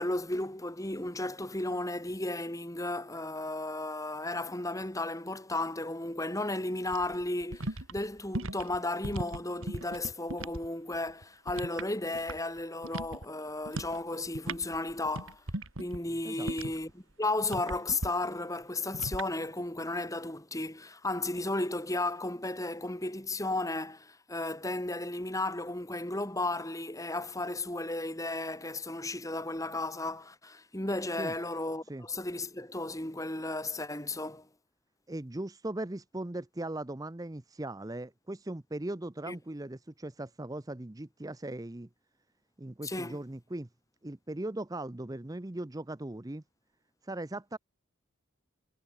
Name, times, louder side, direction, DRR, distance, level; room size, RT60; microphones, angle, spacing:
voice 1, 0.0-15.4 15.8-34.5 39.3-39.4 42.8-43.2, left 2 dB, 15° left, 2.4 m, -34 dB
chocolate fountain drain, 6.9-10.7 10.9-12.6 12.8-13.3 13.7-14.0 14.3-16.9 17.4-18.1 18.9-19.3, right 1 dB, 65° right, 3.2 m, -38 dB
voice 2, 35.1-41.9 42.6-43.7 44.0-46.4 47.0-47.6, right 1 dB, 15° right, 0.6 m, -39 dB
head